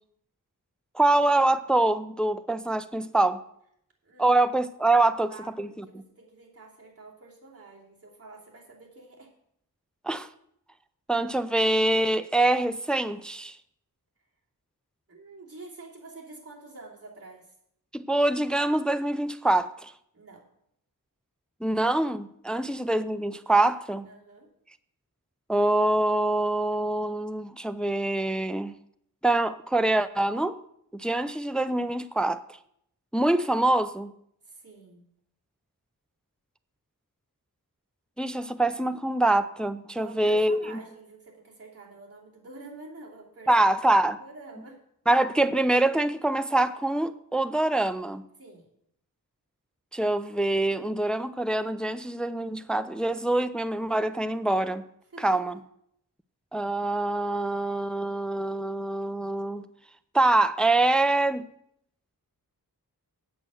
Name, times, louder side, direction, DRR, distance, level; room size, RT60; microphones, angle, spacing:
voice 1, 0.9-3.4 4.2-5.3 5.6-5.8 10.0-10.3 11.1-13.6 17.9-19.9 21.6-24.1 25.5-28.7 29.2-30.6 30.9-32.4 33.1-34.1 38.2-40.8 43.5-44.2 45.1-48.2 49.9-54.8 55.2-55.6 56.5-59.7 60.1-61.5, right 2 dB, 5° left, 0.4 m, -25 dB
voice 2, 4.0-4.4 5.1-9.3 15.1-17.5 20.1-20.5 24.0-24.5 34.4-35.1 40.0-44.8 48.4-48.7 55.1-55.4, right 3 dB, 40° right, 2.9 m, -47 dB
8.3 x 7.7 x 6.2 m
wide cardioid pair, 105°, 37 cm